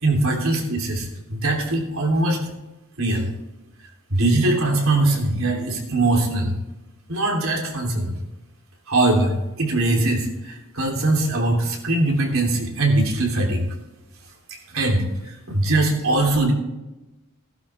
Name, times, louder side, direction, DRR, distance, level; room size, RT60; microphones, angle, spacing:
voice 1, 0.0-2.5 3.0-3.3 4.1-6.5 7.1-8.2 8.9-13.6 14.5-16.5, right 2 dB, 85° right, 0 dB, 3.2 m, -21 dB
16.5 x 11.5 x 3.5 m, 1.0 s
head